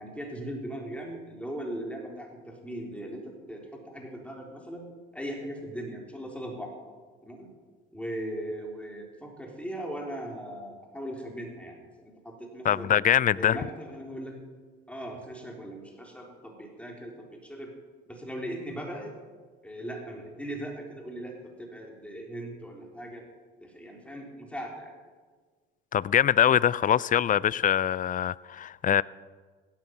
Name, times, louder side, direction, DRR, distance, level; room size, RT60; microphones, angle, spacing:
voice 1, 0.0-2.3 2.6-3.2 3.5-4.8 5.1-6.7 7.2-7.5 7.9-12.9 13.4-14.4 14.9-17.1 17.4-17.7 18.1-19.2 19.6-23.2 23.6-24.9, right 1 dB, 5° left, 3.8 m, -38 dB
voice 2, 12.6-13.6 25.9-29.0, left 10 dB, 30° left, 0.4 m, -23 dB
16.5 x 10.5 x 5.9 m
hypercardioid pair, 65°, 29 cm